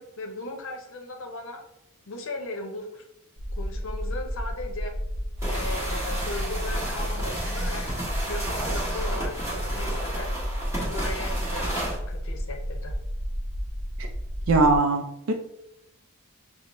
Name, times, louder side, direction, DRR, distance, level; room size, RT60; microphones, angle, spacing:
voice 1, 0.0-1.6 2.1-3.0 3.6-4.9 5.5-7.9 8.2-10.3 10.8-12.9, left 2 dB, 60° left, 4 dB, 0.6 m, -37 dB
sound 1, 3.4-14.8, equal, 85° right, 0.7 m, -31 dB
sound 2, 5.4-12.0, right 1 dB, 15° right, 1.1 m, -33 dB
voice 2, 14.5-15.3, right 3 dB, 60° right, 4 dB, 0.3 m, -21 dB
5.9 x 2.0 x 2.9 m, 0.84 s
head